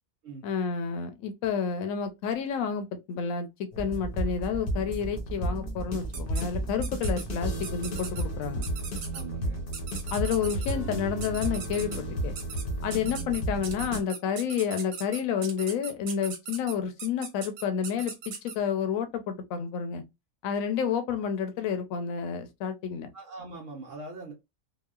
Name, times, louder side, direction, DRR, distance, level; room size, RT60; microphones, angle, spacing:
voice 1, 0.4-3.5 3.8-8.7 10.1-12.3 12.8-20.0 20.4-23.1, left 7 dB, 75° left, 1.0 m, -30 dB
sound 1, 3.7-14.0, right 1 dB, 50° left, 0.7 m, -33 dB
sound 2, 6.1-6.4 6.8-7.2 7.6-8.2 8.6-9.2 9.7-10.7 11.2-12.0 12.3-12.6 12.9-18.5, right 6 dB, 85° right, 1.2 m, -39 dB
voice 2, 9.1-9.6 23.1-24.3, right 3 dB, 65° right, 0.9 m, -42 dB
2.9 x 2.0 x 2.2 m
omnidirectional pair, 1.5 m